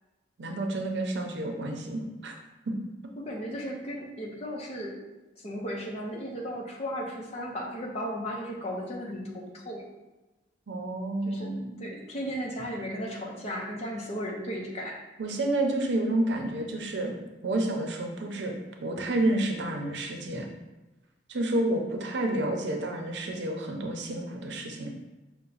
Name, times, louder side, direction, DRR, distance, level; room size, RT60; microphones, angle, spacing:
voice 1, 0.4-2.3 2.7-2.8 10.7-11.8 15.2-17.2 17.4-18.5 18.8-20.5 21.3-24.9, right 1 dB, 75° right, 2 dB, 0.6 m, -30 dB
voice 2, 3.2-5.0 5.4-9.2 9.5-9.8 11.3-11.5 11.8-15.0, equal, 35° left, -2 dB, 0.8 m, -35 dB
5.6 x 2.2 x 3.9 m, 1.1 s
head